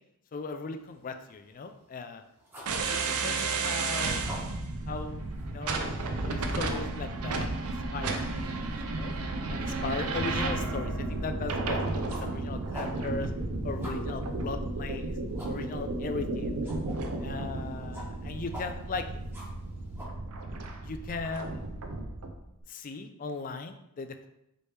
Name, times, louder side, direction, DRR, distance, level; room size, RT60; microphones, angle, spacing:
voice 1, 0.3-2.2 2.7-4.3 4.9-5.9 6.3-9.1 9.5-13.3 13.6-15.2 15.5-16.6 17.2-19.1 20.8-21.6 22.7-24.3, left 4 dB, 40° left, 8 dB, 0.3 m, -38 dB
sound 1, 0.7-20.0, equal, 10° right, 1.0 m, -50 dB
sound 2, 2.7-22.4, right 3 dB, 75° right, 0.5 m, -33 dB
4.3 x 3.2 x 3.3 m, 0.82 s
head